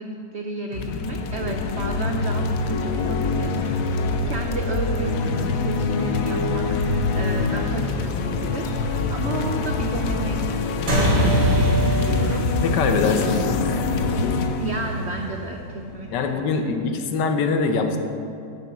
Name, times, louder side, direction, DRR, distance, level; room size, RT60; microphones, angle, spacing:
voice 1, 0.0-12.5 12.8-13.8 14.6-16.7, right 3 dB, 80° right, 3 dB, 0.6 m, -33 dB
sound 1, 0.7-16.1, left 4 dB, 70° left, 0.9 m, -25 dB
sound 2, 10.9-15.7, equal, 55° right, 1.8 m, -23 dB
voice 2, 12.6-13.7 14.0-14.1 16.1-18.0, left 4 dB, 90° left, 6 dB, 1.3 m, -23 dB
6.8 x 5.7 x 7.2 m, 2.6 s
omnidirectional pair, 1.8 m